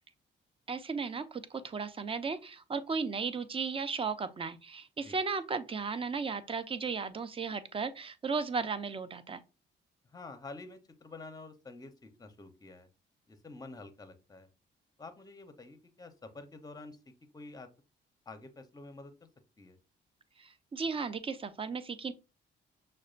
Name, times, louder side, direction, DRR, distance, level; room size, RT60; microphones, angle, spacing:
voice 1, 0.7-9.4 20.4-22.1, right 5 dB, 25° right, 0.4 m, -35 dB
voice 2, 10.1-12.9 13.3-14.5 15.0-17.0 17.3-17.7 18.3-19.1 19.6-19.8, left 3 dB, 20° left, 0.7 m, -48 dB
6.2 x 2.2 x 2.4 m
cardioid pair, 90°, 20 cm